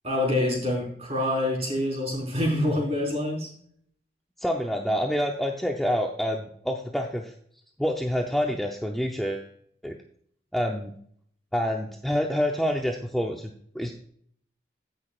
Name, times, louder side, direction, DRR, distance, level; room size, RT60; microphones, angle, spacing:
voice 1, 0.0-3.5, left 1 dB, 35° right, -1 dB, 4.1 m, -26 dB
voice 2, 4.4-7.3 7.8-9.5 9.8-9.9 10.5-10.9 11.5-13.9, equal, ahead, 1 dB, 0.7 m, -27 dB
16.5 x 6.4 x 2.4 m, 0.63 s
head